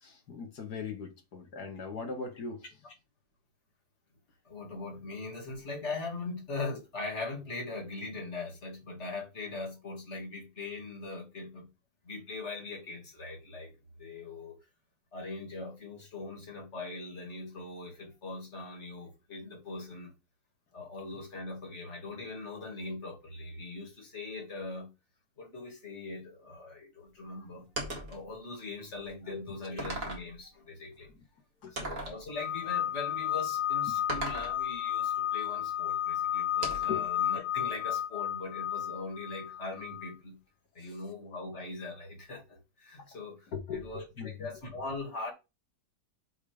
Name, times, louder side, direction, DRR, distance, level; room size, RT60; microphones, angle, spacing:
voice 1, 0.0-2.6 29.3-29.4 31.6-31.9 36.9-37.1 43.5-44.5, left 5 dB, 90° left, 2.3 m, -39 dB
voice 2, 4.4-11.7 12.0-13.7 14.0-14.6 15.1-20.1 20.7-24.9 25.4-31.1 31.7-40.4 40.7-45.3, left 3 dB, 45° left, 2.7 m, -41 dB
sound 1, 27.8-28.2 29.0-29.1 29.8-30.3 31.8-32.2 34.1-34.6 36.6-37.0, right 1 dB, 60° right, 2.4 m, -37 dB
sound 2, 32.3-40.1, left 11 dB, 65° left, 2.3 m, -32 dB
7.1 x 3.7 x 5.1 m
omnidirectional pair, 1.6 m